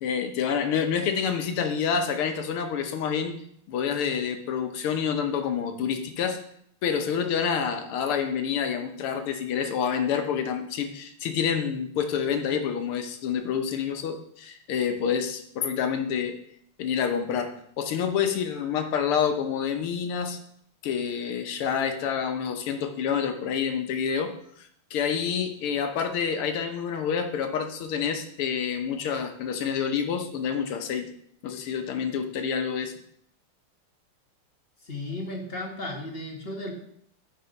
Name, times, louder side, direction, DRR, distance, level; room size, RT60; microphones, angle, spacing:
voice 1, 0.0-3.4 3.7-6.4 6.8-16.4 16.8-20.4 20.8-24.3 24.6-31.1 31.4-32.9, left 7 dB, 80° left, 6 dB, 1.9 m, -28 dB
voice 2, 34.8-36.7, left 1 dB, 30° left, 1 dB, 1.3 m, -34 dB
10.0 x 4.7 x 5.2 m, 0.68 s
omnidirectional pair, 2.4 m